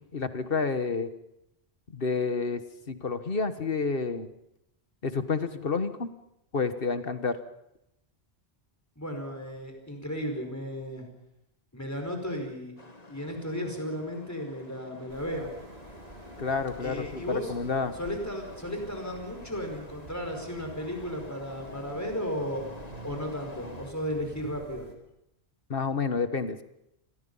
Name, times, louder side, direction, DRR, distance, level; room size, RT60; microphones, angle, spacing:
voice 1, 0.1-1.1 1.9-2.6 2.9-4.3 5.0-6.1 6.5-7.4 16.4-18.0 25.7-26.6, left 4 dB, 60° left, 10 dB, 1.6 m, -29 dB
voice 2, 9.0-11.1 11.7-12.8 13.1-15.5 16.8-17.5 18.0-22.7 23.0-24.9, equal, 15° left, 3 dB, 5.2 m, -34 dB
sound 1, 12.8-23.9, left 2 dB, 40° left, 2.1 m, -49 dB
sound 2, 15.1-24.9, right 1 dB, 80° right, 3.7 m, -49 dB
28.5 x 21.5 x 5.6 m, 0.82 s
omnidirectional pair, 1.1 m